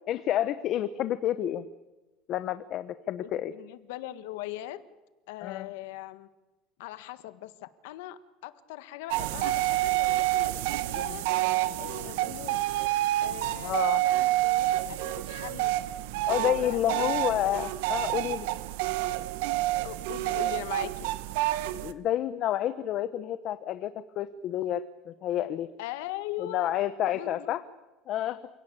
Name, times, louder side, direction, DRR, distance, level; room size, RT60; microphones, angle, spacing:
voice 1, 0.1-1.7 2.3-3.5 5.4-5.7 13.6-14.0 16.3-18.5 21.7-25.7 26.4-27.6 28.1-28.4, left 12 dB, 40° left, 12 dB, 0.8 m, -29 dB
voice 2, 3.5-4.8 5.3-6.3 6.8-11.3 11.8-12.6 13.2-15.8 16.3-17.1 19.8-21.1 25.8-26.7 27.1-27.6, left 15 dB, 85° left, 13 dB, 1.6 m, -40 dB
sound 1, 9.1-21.9, right 16 dB, 85° right, 1.2 m, -28 dB
28.0 x 17.5 x 8.6 m, 1.1 s
cardioid pair, 170°, 0 cm